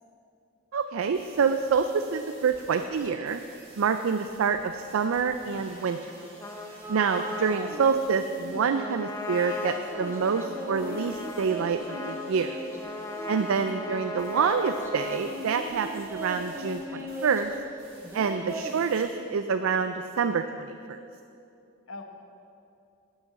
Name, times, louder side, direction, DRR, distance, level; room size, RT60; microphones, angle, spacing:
voice 1, 0.7-3.4 3.8-6.0 6.9-12.6 13.3-17.5 18.1-21.0, right 5 dB, 75° right, 8 dB, 0.4 m, -27 dB
sound 1, 0.8-0.9 1.1-19.3, right 1 dB, 30° right, 3.0 m, -52 dB
Trumpet, 6.4-15.3, left 2 dB, 15° left, 0.7 m, -38 dB
sound 2, 6.8-8.0 8.3-9.1 9.6-13.8 14.4-17.7 18.0-18.8, right 1 dB, 10° right, 0.9 m, -39 dB
voice 2, 13.4-14.1 18.4-18.9 21.9-22.0, left 2 dB, 75° left, 3 dB, 1.3 m, -46 dB
10.5 x 6.3 x 7.5 m, 2.6 s
head